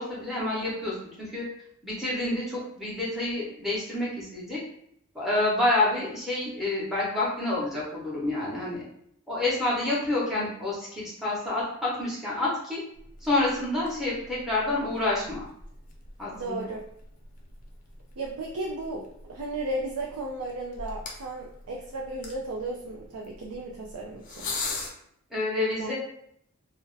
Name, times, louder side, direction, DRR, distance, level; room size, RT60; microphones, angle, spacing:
voice 1, 0.0-1.4 1.8-4.6 5.1-8.8 9.3-12.8 13.2-15.4 16.2-16.6 25.3-25.9, left 2 dB, ahead, -7 dB, 0.8 m, -28 dB
sound 1, 12.9-24.9, left 3 dB, 35° left, 0.5 m, -42 dB
voice 2, 16.3-16.8 18.2-24.5 25.7-25.9, right 2 dB, 80° right, -1 dB, 0.4 m, -34 dB
2.6 x 2.1 x 3.9 m, 0.70 s
head